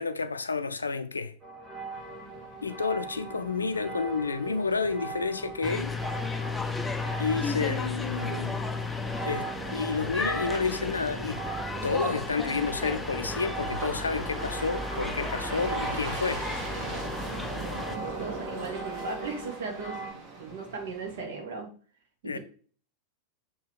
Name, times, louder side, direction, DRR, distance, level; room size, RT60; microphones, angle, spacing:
voice 1, 0.0-1.3 2.6-5.9 7.2-8.6 9.3-11.4 11.8-16.5 22.2-22.4, left 4 dB, 75° left, 0.5 m, -30 dB
sound 1, 1.4-20.1, right 4 dB, 15° right, 2.9 m, -41 dB
sound 2, 1.9-21.2, right 3 dB, 40° right, 2.0 m, -41 dB
sound 3, 5.6-18.0, left 3 dB, 10° left, 0.5 m, -34 dB
voice 2, 17.6-20.0 20.4-21.7 22.2-22.4, right 4 dB, 55° right, 1.7 m, -37 dB
6.6 x 3.0 x 4.7 m
figure-of-eight pair, 90°, 0 cm